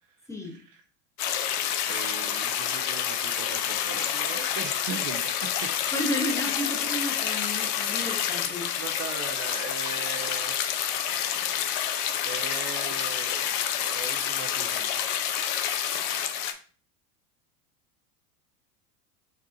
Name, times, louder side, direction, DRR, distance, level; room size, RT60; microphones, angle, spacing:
voice 1, 0.4-0.8 1.9-5.9 8.8-10.6 12.2-15.0, right 7 dB, 40° right, 5 dB, 0.6 m, -39 dB
sound 1, 1.2-16.5, left 9 dB, 50° left, 0.7 m, -28 dB
voice 2, 5.9-8.7, left 1 dB, 5° left, 1 dB, 1.0 m, -32 dB
5.5 x 2.3 x 2.6 m, 0.39 s
hypercardioid pair, 95°, 48 cm